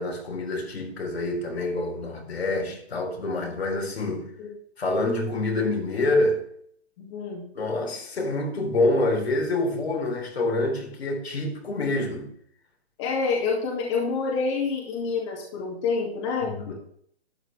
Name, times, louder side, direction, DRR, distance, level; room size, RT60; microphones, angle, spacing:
voice 1, 0.0-4.3 4.8-6.4 7.5-12.3 16.4-16.7, left 2 dB, 70° left, 3.9 m, -26 dB
voice 2, 7.0-7.4 13.0-16.7, left 4 dB, 25° left, 2.4 m, -27 dB
12.5 x 10.0 x 3.4 m
hypercardioid pair, 165°, 32 cm